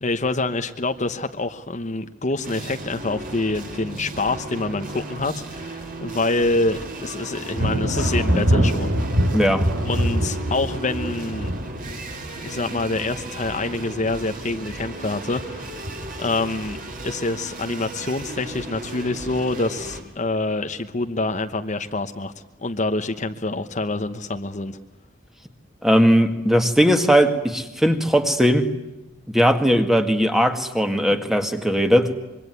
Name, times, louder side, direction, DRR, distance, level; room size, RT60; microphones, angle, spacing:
voice 1, 0.0-9.0 9.8-11.5 12.4-15.8 16.2-16.8 17.0-22.3 22.6-24.8, left 2 dB, 40° left, 7 dB, 1.1 m, -26 dB
sound 1, 2.4-20.0, right 2 dB, 45° right, 5.3 m, -35 dB
Thunder, 7.5-14.0 14.3-14.9 15.4-16.2, equal, 80° right, 3.8 m, -24 dB
voice 2, 9.3-9.7 25.8-28.7 29.3-32.1, equal, ahead, 7 dB, 1.9 m, -18 dB
26.0 x 23.0 x 9.5 m, 1.0 s
head